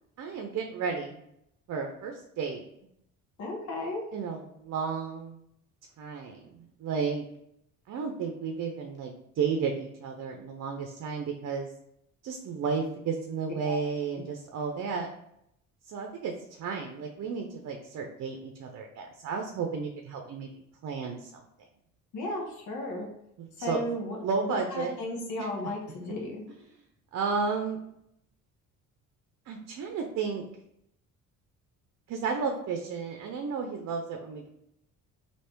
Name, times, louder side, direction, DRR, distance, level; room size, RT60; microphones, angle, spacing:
voice 1, 0.2-1.2 1.7-2.6 4.1-5.4 6.0-7.2 7.9-11.7 12.2-15.1 15.9-20.5 20.8-21.4 23.4-23.8 24.2-24.9 25.4-25.5 27.1-27.8 29.5-30.4 32.1-34.5, right 5 dB, 50° right, 3 dB, 0.7 m, -33 dB
voice 2, 3.4-4.0 13.6-13.8 22.1-23.1 23.6-26.4, left 1 dB, 60° left, -1 dB, 1.1 m, -35 dB
3.2 x 2.9 x 4.5 m, 0.76 s
cardioid pair, 95°, 34 cm